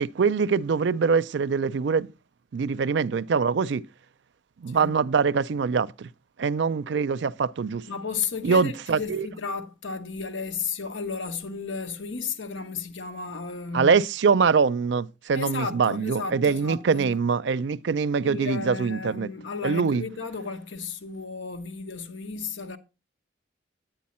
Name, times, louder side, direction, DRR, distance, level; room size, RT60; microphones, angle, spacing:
voice 1, 0.0-2.1 2.5-3.8 4.6-6.1 6.4-7.9 8.4-9.3 13.7-19.3 19.6-20.0, right 5 dB, 70° right, 0.4 m, -23 dB
voice 2, 7.9-13.9 15.3-17.2 18.2-22.8, left 5 dB, 90° left, 1.0 m, -33 dB
9.4 x 9.1 x 4.2 m
head